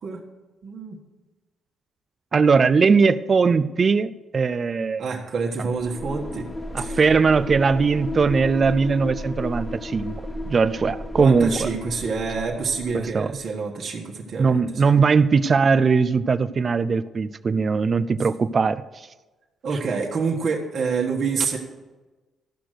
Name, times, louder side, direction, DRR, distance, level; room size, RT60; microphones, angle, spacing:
voice 1, 0.6-1.0 5.0-6.5 6.8-7.0 11.2-14.9 19.6-21.6, right 5 dB, 55° right, -2 dB, 1.4 m, -27 dB
voice 2, 2.3-5.1 6.7-10.1 10.5-11.7 12.9-13.3 14.4-18.8, right 5 dB, 40° right, 12 dB, 0.4 m, -20 dB
sound 1, 5.6-13.4, left 1 dB, 15° left, 1.2 m, -34 dB
13.0 x 6.0 x 6.6 m, 1.2 s
cardioid pair, 90°, 0 cm